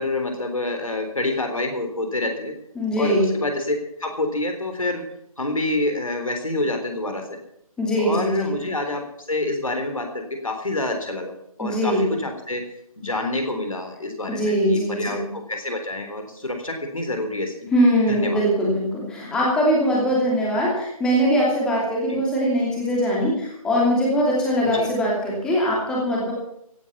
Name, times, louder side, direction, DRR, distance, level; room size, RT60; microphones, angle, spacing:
voice 1, 0.0-2.5 3.0-5.0 5.4-7.2 8.0-9.0 9.3-11.3 11.6-12.6 13.0-17.7 18.1-18.4 22.1-22.2 24.6-24.9, left 2 dB, 65° left, 5 dB, 3.8 m, -27 dB
voice 2, 2.8-3.3 7.8-8.5 11.6-12.1 14.3-15.2 17.7-26.3, equal, 5° left, -4 dB, 2.7 m, -21 dB
16.5 x 9.7 x 7.2 m, 0.78 s
figure-of-eight pair, 150°, 19 cm